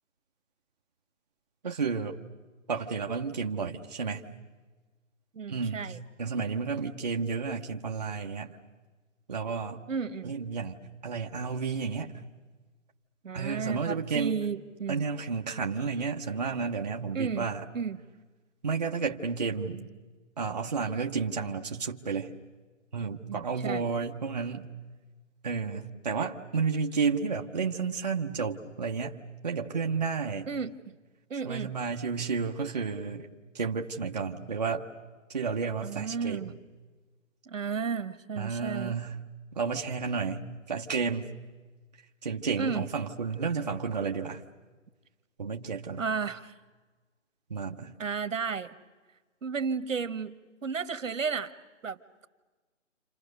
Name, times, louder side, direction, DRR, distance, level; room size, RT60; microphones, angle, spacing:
voice 1, 1.6-2.2 2.7-4.2 5.5-5.8 6.2-8.5 9.3-9.8 10.2-10.8 11.0-12.1 13.3-14.4 14.9-17.7 18.6-19.9 20.4-22.3 22.9-24.6 25.4-29.2 29.4-30.5 31.4-33.3 33.5-34.9 35.3-36.4 38.4-39.2 39.6-41.3 42.2-44.4 45.4-46.0 47.5-47.9, right 5 dB, 35° right, 1 dB, 1.0 m, -31 dB
voice 2, 5.3-6.0 9.9-10.4 13.2-15.0 17.1-17.5 17.7-18.0 23.3-23.9 30.5-30.8 31.3-31.7 35.8-36.5 37.5-38.9 42.6-42.9 46.0-46.5 48.0-48.7 49.4-50.4 50.6-51.5 51.8-52.0, right 5 dB, 80° right, 12 dB, 1.4 m, -33 dB
29.5 x 26.5 x 6.6 m, 1.3 s
hypercardioid pair, 175°, 39 cm